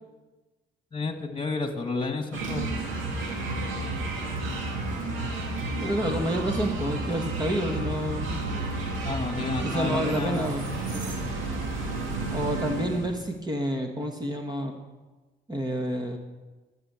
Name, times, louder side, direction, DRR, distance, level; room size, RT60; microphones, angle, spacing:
voice 1, 0.9-2.7 9.0-10.5 11.2-11.3, left 3 dB, 25° left, 6 dB, 2.0 m, -31 dB
sound 1, 2.3-13.2, right 2 dB, 90° right, 2.3 m, -31 dB
voice 2, 5.8-8.4 9.6-11.2 12.3-14.8 15.5-16.2, right 1 dB, 20° right, 3 dB, 1.5 m, -29 dB
13.5 x 7.1 x 8.2 m, 1.2 s
cardioid pair, 90°, 20 cm